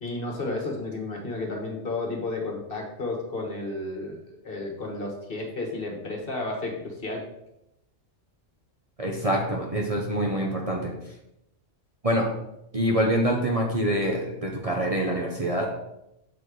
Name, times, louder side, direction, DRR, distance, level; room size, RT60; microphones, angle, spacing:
voice 1, 0.0-7.2, left 2 dB, 50° left, 1 dB, 1.5 m, -32 dB
voice 2, 9.0-10.9 12.0-12.3 12.7-15.7, right 1 dB, 35° right, -1 dB, 0.8 m, -25 dB
7.0 x 4.2 x 4.8 m, 0.83 s
omnidirectional pair, 1.3 m